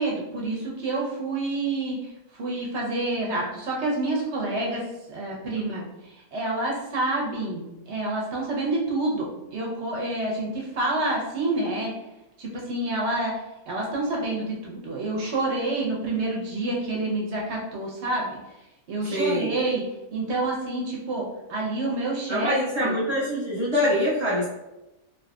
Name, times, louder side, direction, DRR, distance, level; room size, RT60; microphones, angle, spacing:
voice 1, 0.0-2.0 2.3-4.8 5.1-5.8 6.3-11.9 12.4-13.4 13.7-18.4 18.9-19.8 20.1-23.0, right 2 dB, 60° right, -3 dB, 0.9 m, -28 dB
voice 2, 19.1-19.5 22.3-24.5, equal, 20° right, -9 dB, 0.9 m, -24 dB
3.8 x 2.8 x 2.3 m, 0.96 s
omnidirectional pair, 1.6 m